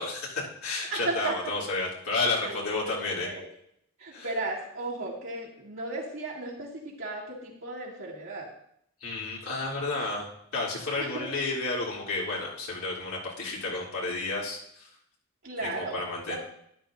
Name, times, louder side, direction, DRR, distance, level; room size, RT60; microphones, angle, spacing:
voice 1, 0.0-3.3 4.1-4.3 9.0-10.3 10.5-14.9 15.6-16.4, left 3 dB, 75° left, -4 dB, 2.9 m, -31 dB
voice 2, 0.9-1.3 2.4-3.4 4.0-8.5 11.0-11.3 15.4-16.0 16.3-16.4, right 2 dB, 60° right, -5 dB, 2.2 m, -35 dB
12.5 x 11.0 x 2.6 m, 0.72 s
head